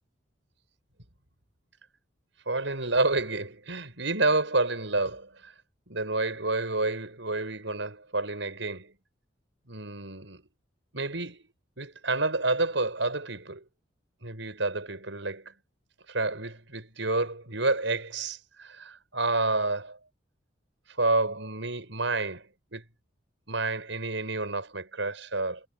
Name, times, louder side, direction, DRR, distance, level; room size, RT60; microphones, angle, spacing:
voice 1, 2.5-5.5 5.9-8.9 9.7-10.4 10.9-11.4 11.8-13.6 14.2-15.5 16.1-20.0 21.0-22.8 23.5-25.6, right 2 dB, 80° right, 6.6 m, -29 dB
head